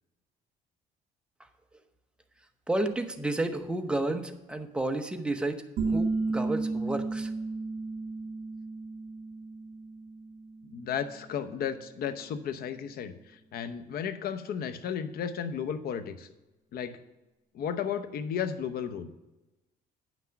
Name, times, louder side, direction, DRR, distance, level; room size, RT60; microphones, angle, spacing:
voice 1, 2.7-7.3, right 2 dB, 5° right, 6 dB, 0.9 m, -31 dB
sound 1, 5.8-11.2, right 3 dB, 65° right, 1.7 m, -33 dB
voice 2, 10.7-13.1 13.5-16.3 16.7-16.9 17.5-19.1, left 8 dB, 65° left, 11 dB, 0.8 m, -33 dB
9.1 x 6.1 x 5.8 m, 1.1 s
cardioid pair, 110°, 17 cm